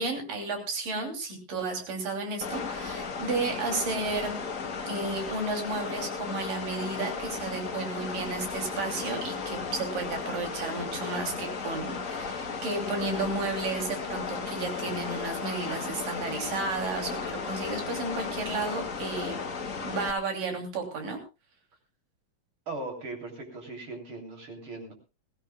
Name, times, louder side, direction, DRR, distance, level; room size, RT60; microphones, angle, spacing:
voice 1, 0.0-4.4 4.9-19.4 19.8-21.2, right 3 dB, 75° right, 3 dB, 4.7 m, -33 dB
sound 1, 2.4-20.1, left 5 dB, 45° left, 1.0 m, -35 dB
voice 2, 22.7-24.9, right 3 dB, 40° right, 2 dB, 3.9 m, -39 dB
21.5 x 16.0 x 2.3 m, 0.28 s
omnidirectional pair, 3.9 m